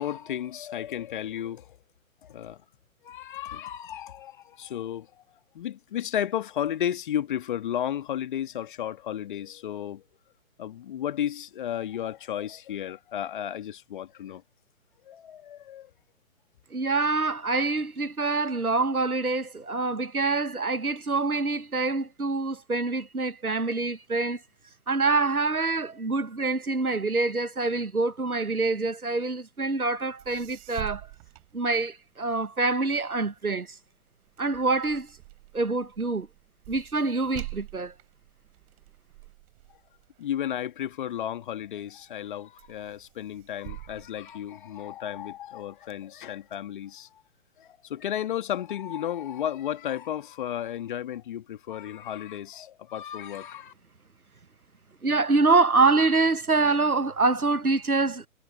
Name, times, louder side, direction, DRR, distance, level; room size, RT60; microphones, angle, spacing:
voice 1, 0.0-1.6 2.3-2.6 3.0-5.1 5.6-10.0 10.6-14.4 15.1-15.9 40.2-47.1 47.6-53.7, left 10 dB, 35° left, 2.1 m, -33 dB
voice 2, 16.7-24.4 24.9-31.0 31.5-33.8 34.4-35.1 35.5-36.3 36.7-37.9 55.0-58.3, right 3 dB, 85° right, 1.3 m, -25 dB
sound 1, 30.2-32.3 32.7-41.4 41.9-42.3 42.6-45.1 45.5-46.6, right 25 dB, 25° right, 5.5 m, -46 dB
figure-of-eight pair, 130°, 43 cm